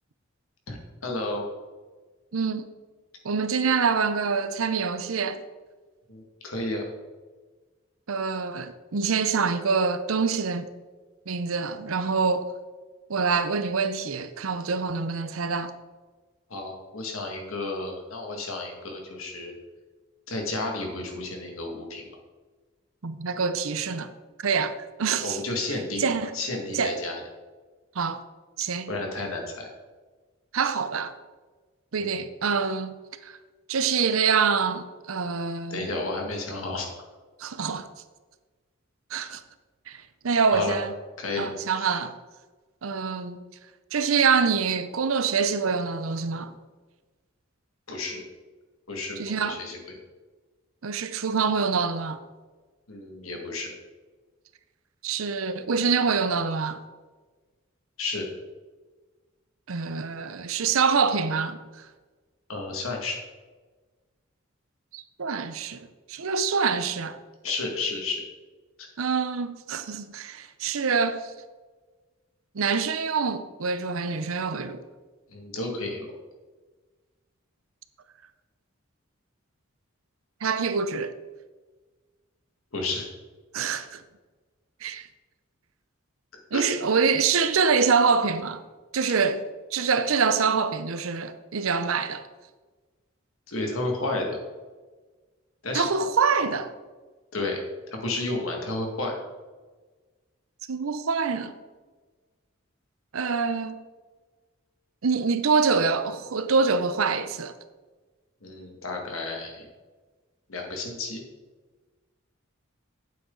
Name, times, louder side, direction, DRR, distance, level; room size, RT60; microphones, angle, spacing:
voice 1, 0.7-1.5 6.1-6.9 16.5-19.5 20.3-22.0 25.2-27.2 28.9-29.7 32.0-32.3 35.7-36.9 40.5-40.8 41.2-41.5 41.8-41.9 47.9-48.2 48.9-50.0 52.9-53.7 58.0-58.3 62.5-63.2 67.4-68.2 68.8-68.9 75.3-76.1 82.7-83.1 86.5-86.6 93.5-94.4 95.6-95.9 97.3-97.6 97.9-99.2 108.4-109.7 110.5-111.2, left 2 dB, 85° left, 2.0 m, -32 dB
voice 2, 2.3-2.7 3.2-5.4 8.1-10.7 11.3-12.5 13.1-15.7 23.0-24.1 24.4-25.4 26.0-26.3 26.7-27.0 28.0-28.2 28.6-28.9 30.5-31.1 31.9-33.0 33.2-33.3 33.7-35.9 37.4-37.9 39.1-39.4 39.9-40.9 41.4-42.1 42.8-43.4 43.9-46.5 49.2-49.6 50.8-52.2 55.0-56.8 59.7-61.6 64.9-67.2 69.0-71.3 72.5-74.8 80.4-81.1 83.5-84.0 84.8-85.1 86.5-88.6 88.9-89.4 89.7-92.3 95.7-96.7 100.7-101.5 103.1-103.8 105.0-107.5, right 5 dB, 85° right, 0.7 m, -25 dB
8.9 x 7.9 x 3.9 m
head